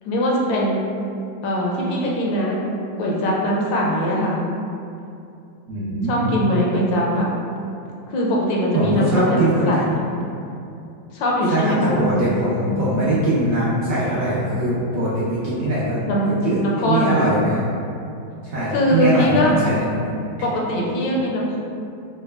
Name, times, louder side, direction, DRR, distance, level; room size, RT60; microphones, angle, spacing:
voice 1, 0.0-0.8 1.4-2.6 3.0-4.4 6.1-7.3 8.1-10.0 11.1-12.0 16.0-17.2 18.7-19.5 20.4-21.6, equal, 75° left, -3 dB, 1.2 m, -21 dB
voice 2, 5.7-6.3 8.7-9.9 11.5-16.1 16.4-17.6 18.4-20.0, right 1 dB, 75° right, -10 dB, 0.7 m, -21 dB
4.0 x 2.1 x 3.2 m, 2.6 s
omnidirectional pair, 2.2 m